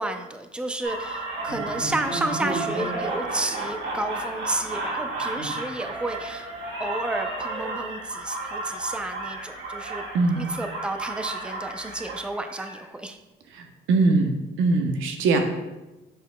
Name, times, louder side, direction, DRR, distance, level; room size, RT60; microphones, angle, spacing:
voice 1, 0.0-6.5 6.8-10.1 10.4-13.2, right 2 dB, 5° right, 6 dB, 0.5 m, -31 dB
sound 1, 0.8-12.8, right 2 dB, 60° right, 1.8 m, -32 dB
voice 2, 13.5-14.3 14.6-15.4, right 3 dB, 90° right, 4 dB, 0.8 m, -21 dB
6.9 x 6.4 x 2.2 m, 1.1 s
cardioid pair, 90°, 20 cm